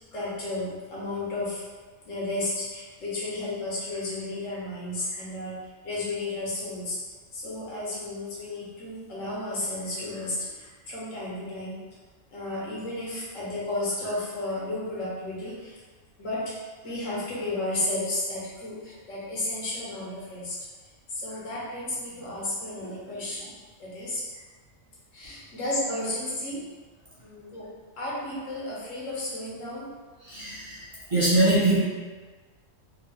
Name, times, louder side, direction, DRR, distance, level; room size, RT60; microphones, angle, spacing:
voice 1, 0.1-1.6 2.0-5.5 5.8-7.0 7.3-11.7 12.3-15.8 16.2-16.5 16.8-23.5 23.8-24.4 25.1-26.6 27.2-27.7 28.0-29.9, left 2 dB, 85° left, -7 dB, 1.4 m, -33 dB
voice 2, 30.2-31.8, right 2 dB, 30° right, -10 dB, 0.7 m, -23 dB
3.7 x 2.2 x 2.9 m, 1.4 s
omnidirectional pair, 1.3 m